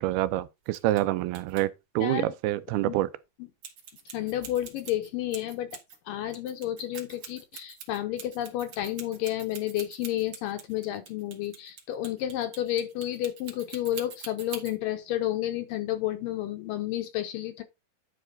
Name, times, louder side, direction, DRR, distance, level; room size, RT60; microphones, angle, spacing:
voice 1, 0.0-3.1, right 15 dB, 85° right, 2.5 m, -27 dB
sound 1, 0.7-1.0 1.3-1.6 3.6-6.0 6.3-14.8, right 6 dB, 50° right, 2.0 m, -44 dB
voice 2, 2.0-2.3 2.8-3.0 4.1-5.8 6.1-17.6, left 13 dB, 75° left, 2.2 m, -31 dB
10.5 x 4.9 x 4.0 m
omnidirectional pair, 4.5 m